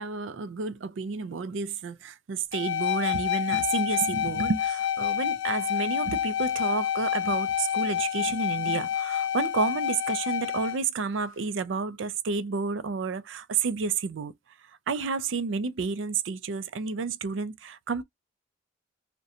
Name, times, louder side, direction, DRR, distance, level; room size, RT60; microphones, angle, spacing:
voice 1, 0.0-14.3 14.9-18.0, right 5 dB, 80° right, 0.4 m, -30 dB
sound 1, 2.5-10.8, left 10 dB, 90° left, 0.4 m, -28 dB
2.4 x 2.1 x 2.7 m
head